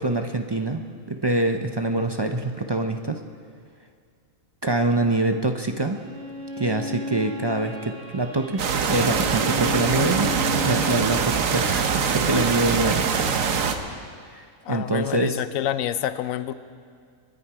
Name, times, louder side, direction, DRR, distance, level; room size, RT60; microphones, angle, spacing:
voice 1, 0.0-3.2 4.6-6.0 6.6-10.4 10.6-13.1 14.3-14.4 14.7-15.4, right 2 dB, 40° right, 6 dB, 0.3 m, -25 dB
Bowed string instrument, 5.8-11.2, left 2 dB, 60° right, 2.3 m, -35 dB
sound 1, 8.6-13.8, right 6 dB, 80° right, 1.3 m, -23 dB
voice 2, 14.6-16.5, left 11 dB, 85° left, 14 dB, 1.0 m, -27 dB
25.5 x 10.5 x 4.8 m, 2.1 s
omnidirectional pair, 1.4 m